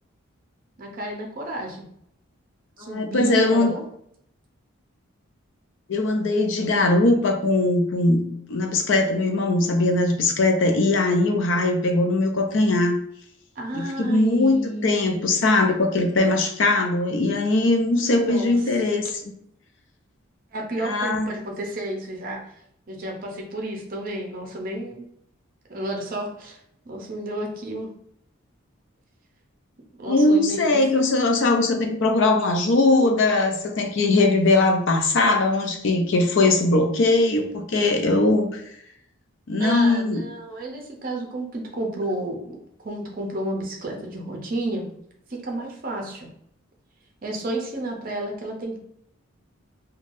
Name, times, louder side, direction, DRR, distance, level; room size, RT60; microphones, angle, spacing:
voice 1, 0.8-1.9 2.8-3.8 13.6-15.5 18.2-18.5 20.5-22.6 22.9-25.0 25.7-26.6 26.9-27.9 30.0-30.8 39.6-44.9 45.3-46.3 47.2-48.8, right 1 dB, 40° right, 1 dB, 0.6 m, -31 dB
voice 2, 2.8-3.7 5.9-13.0 13.7-14.6 14.8-19.3 20.8-21.3 30.1-38.6 39.5-40.2, left 2 dB, 60° left, 4 dB, 0.4 m, -20 dB
3.2 x 2.2 x 2.5 m, 0.72 s
head